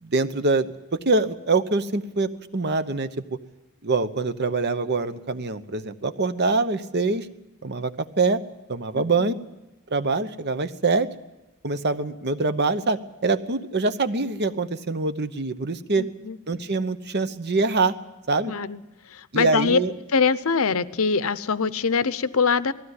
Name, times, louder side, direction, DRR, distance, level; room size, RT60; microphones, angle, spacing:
voice 1, 0.0-3.1 3.8-7.3 7.6-8.4 8.7-9.4 9.9-11.1 11.6-16.1 16.5-18.0 18.3-18.5 19.3-19.9, right 3 dB, 50° right, 11 dB, 1.0 m, -24 dB
voice 2, 9.0-9.3 16.0-16.4 18.5-18.8 19.1-19.8 20.1-22.7, left 5 dB, 65° left, 15 dB, 0.8 m, -23 dB
19.5 x 15.0 x 9.7 m, 1.0 s
head